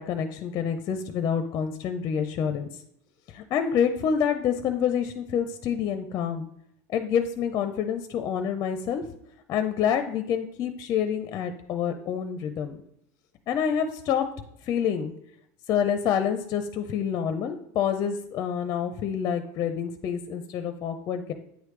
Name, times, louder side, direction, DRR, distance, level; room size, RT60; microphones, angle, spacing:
voice 1, 0.0-2.7 3.3-6.5 6.9-9.0 9.5-12.8 13.5-14.3 14.6-15.1 15.7-21.3, left 8 dB, 40° left, 8 dB, 0.5 m, -27 dB
9.0 x 3.3 x 3.2 m, 0.73 s
supercardioid pair, 140°, 9 cm